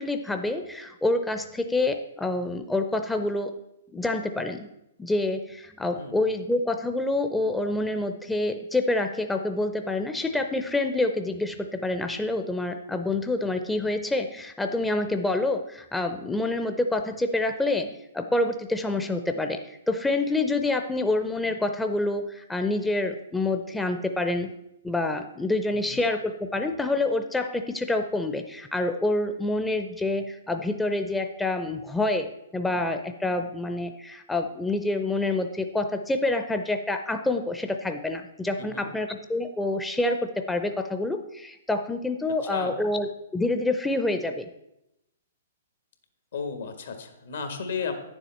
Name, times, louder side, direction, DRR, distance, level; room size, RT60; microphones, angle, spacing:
voice 1, 0.0-3.5 3.9-4.7 5.0-24.5 24.8-43.1 43.3-44.5, left 2 dB, 5° left, 6 dB, 0.5 m, -27 dB
voice 2, 25.7-26.1 38.7-38.9 42.4-42.9 46.3-48.0, left 5 dB, 75° left, 7 dB, 1.5 m, -34 dB
9.7 x 7.2 x 4.3 m, 0.88 s
hypercardioid pair, 130°, 0 cm